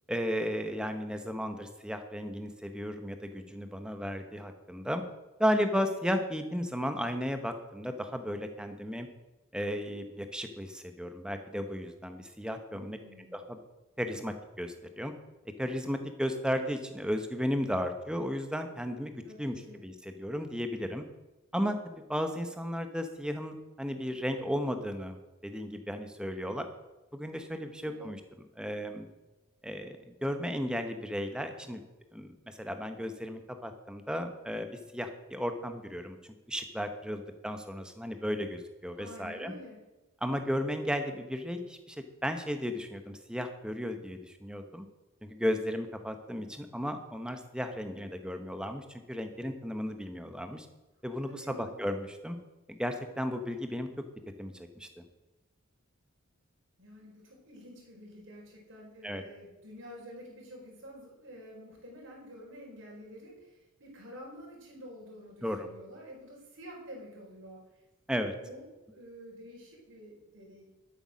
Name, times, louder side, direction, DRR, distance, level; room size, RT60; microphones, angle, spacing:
voice 1, 0.1-5.0 5.4-9.1 9.5-13.0 13.3-13.6 14.0-15.1 15.6-19.1 19.4-19.5 19.8-21.0 21.5-25.2 25.4-26.7 27.1-28.2 28.6-29.1 29.6-31.8 32.1-36.2 36.5-39.5 40.2-44.9 45.2-50.7 51.0-52.4 52.7-53.9 54.4-55.0 59.0-59.2 65.4-65.7 68.1-68.3, equal, 5° right, 6 dB, 1.0 m, -34 dB
voice 2, 12.7-13.4 19.2-19.8 27.8-28.1 38.9-39.8 51.2-51.8 56.8-67.6 68.4-70.6, equal, 60° right, -2 dB, 4.5 m, -49 dB
12.0 x 8.4 x 6.3 m, 1.1 s
head